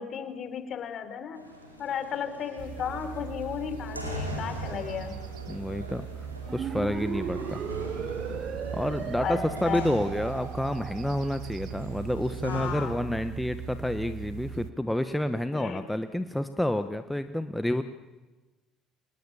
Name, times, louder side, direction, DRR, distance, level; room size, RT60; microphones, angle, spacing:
voice 1, 0.0-1.5 1.8-5.2 9.2-9.9 12.5-13.0 15.5-15.8, left 8 dB, 45° left, 10 dB, 3.9 m, -34 dB
sound 1, 1.3-12.9, equal, 90° right, 4.7 m, -41 dB
sound 2, 2.6-14.7, right 8 dB, 55° right, 1.4 m, -40 dB
voice 2, 5.5-7.6 8.7-17.8, left 1 dB, 5° left, 10 dB, 1.4 m, -29 dB
sound 3, 6.4-11.2, right 7 dB, 40° right, 1.0 m, -36 dB
29.5 x 27.5 x 7.3 m, 1.2 s
figure-of-eight pair, 55°, 0 cm